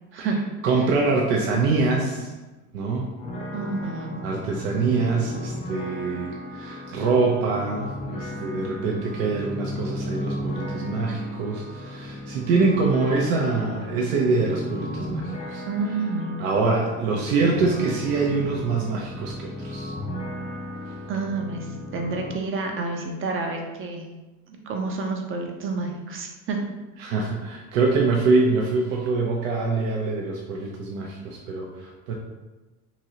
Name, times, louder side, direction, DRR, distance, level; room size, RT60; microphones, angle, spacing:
voice 1, 0.6-2.3 2.7-3.1 4.2-15.6 16.4-19.9 27.0-32.1, right 3 dB, 80° right, -1 dB, 0.7 m, -24 dB
sound 1, 3.2-22.4, left 1 dB, 20° left, 0.3 m, -35 dB
voice 2, 3.5-4.2 15.7-16.3 21.1-24.1 24.5-26.6, right 3 dB, 30° right, 2 dB, 0.6 m, -29 dB
2.9 x 2.7 x 2.8 m, 1.1 s
supercardioid pair, 95°, 42 cm